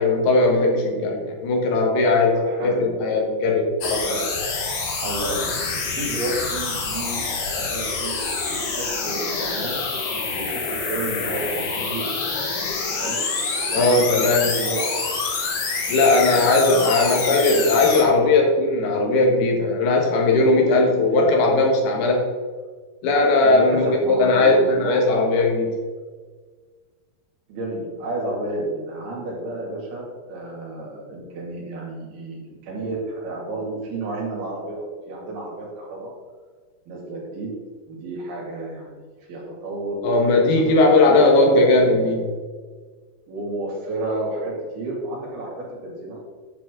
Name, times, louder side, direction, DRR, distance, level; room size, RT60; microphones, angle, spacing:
voice 1, 0.0-4.2 13.8-14.5 15.9-22.2 23.0-25.8 40.0-42.3, left 2 dB, 90° left, 0 dB, 3.5 m, -18 dB
voice 2, 2.3-2.9 4.0-4.2 5.0-9.8 10.3-12.1 13.0-13.2 13.7-14.9 16.0-16.5 17.0-17.4 20.9-21.3 23.4-25.0 27.5-36.1 36.9-37.5 37.9-40.0 40.4-42.2 43.3-46.2, right 2 dB, 75° right, -3 dB, 4.5 m, -31 dB
sound 1, 3.8-18.0, left 4 dB, 60° left, 2.7 m, -26 dB
9.8 x 7.6 x 3.8 m, 1.5 s
omnidirectional pair, 4.4 m